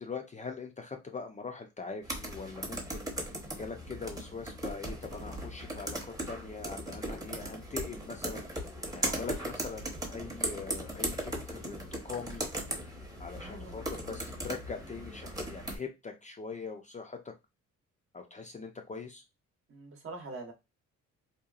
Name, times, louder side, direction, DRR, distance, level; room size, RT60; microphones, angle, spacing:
voice 1, 0.0-8.4 8.9-12.5 13.2-17.3 18.1-19.2, left 4 dB, 25° left, 4 dB, 0.5 m, -42 dB
sound 1, 2.0-15.8, right 1 dB, 10° right, 0.8 m, -38 dB
voice 2, 9.0-9.4 13.3-13.8 19.7-20.5, right 2 dB, 45° right, 3 dB, 0.8 m, -44 dB
2.9 x 2.3 x 2.3 m, 0.23 s
cardioid pair, 90°, 30 cm